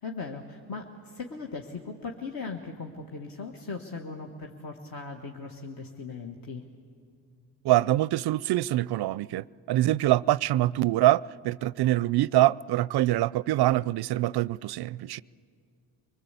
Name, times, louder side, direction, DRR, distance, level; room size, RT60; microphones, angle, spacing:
voice 1, 0.0-6.6, left 4 dB, 50° left, 1.7 m, -38 dB
voice 2, 7.6-15.2, right 15 dB, 55° right, 0.5 m, -24 dB
25.5 x 19.5 x 8.3 m
supercardioid pair, 55°, 46 cm